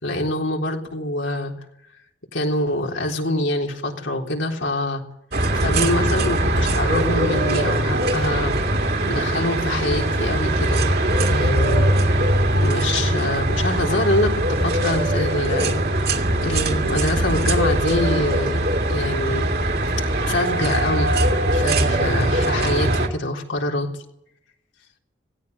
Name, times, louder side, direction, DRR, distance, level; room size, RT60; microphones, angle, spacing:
voice 1, 0.0-1.5 2.3-5.0 5.5-10.9 11.3-11.9 12.6-19.5 20.3-21.2 21.5-23.9, left 1 dB, 80° left, 1 dB, 3.7 m, -25 dB
sound 1, 5.3-23.1, right 1 dB, 55° right, 2.3 m, -21 dB
17.5 x 17.0 x 9.4 m, 0.77 s
head